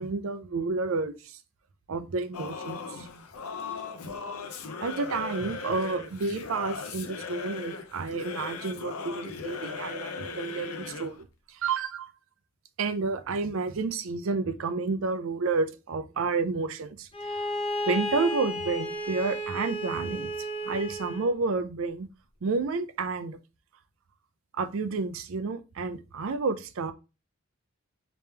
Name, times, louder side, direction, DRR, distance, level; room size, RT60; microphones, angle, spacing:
voice 1, 0.0-1.4 1.9-3.1 4.8-12.1 12.8-17.5 17.9-20.3 20.7-22.1 22.4-23.4 24.5-26.9, right 4 dB, 70° right, 0.4 m, -30 dB
Singing / Musical instrument, 2.3-11.2, left 5 dB, 85° left, 0.6 m, -38 dB
Bowed string instrument, 17.1-21.3, equal, 25° left, 0.6 m, -33 dB
3.4 x 2.9 x 3.3 m
head